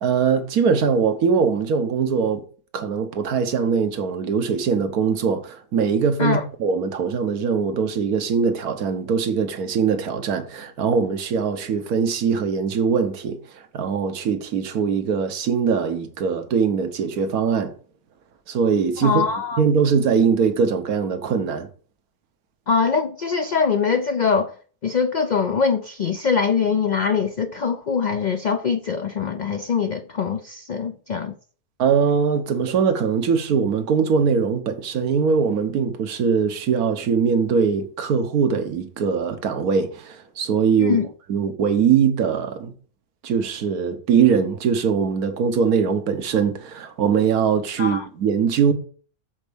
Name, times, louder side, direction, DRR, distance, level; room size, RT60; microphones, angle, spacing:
voice 1, 0.0-2.4 2.7-17.7 18.5-19.2 19.6-21.7 31.8-41.0 41.3-42.7 43.2-48.7, right 6 dB, 80° right, 1.5 m, -21 dB
voice 2, 19.0-19.6 22.7-24.5 24.8-31.3 40.8-41.1 47.8-48.1, left 5 dB, 60° left, 0.4 m, -23 dB
7.4 x 4.5 x 6.9 m
omnidirectional pair, 1.5 m